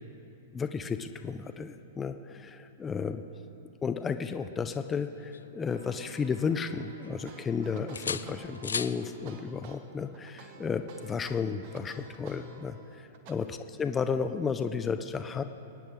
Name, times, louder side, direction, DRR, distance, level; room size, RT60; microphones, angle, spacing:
voice 1, 0.5-3.2 3.8-15.4, left 5 dB, 20° left, 9 dB, 0.6 m, -33 dB
sound 1, 4.8-6.3 6.7-7.5 7.9-9.0 10.9-11.1, left 6 dB, 85° left, 0.4 m, -39 dB
sound 2, 5.7-11.6, right 2 dB, 75° right, 1.5 m, -53 dB
sound 3, 7.2-13.3, right 6 dB, 50° right, 1.3 m, -52 dB
23.5 x 9.8 x 3.7 m, 2.7 s
hypercardioid pair, 110°, 0 cm